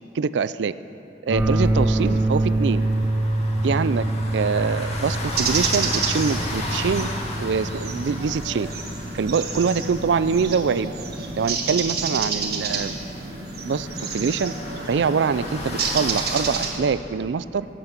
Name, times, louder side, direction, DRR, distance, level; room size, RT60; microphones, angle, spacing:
voice 1, 0.1-0.7 1.2-2.8 3.6-4.0 4.3-7.1 7.4-8.7 9.1-10.9 11.4-12.9 13.6-14.5 14.9-17.7, right 5 dB, 85° right, 15 dB, 0.4 m, -24 dB
sound 1, 1.3-16.7, left 1 dB, 35° left, 2.0 m, -34 dB
sound 2, 1.3-11.2, right 1 dB, 10° right, 1.2 m, -26 dB
sound 3, 5.3-16.8, right 5 dB, 60° right, 1.5 m, -30 dB
17.5 x 8.5 x 6.7 m, 2.9 s
head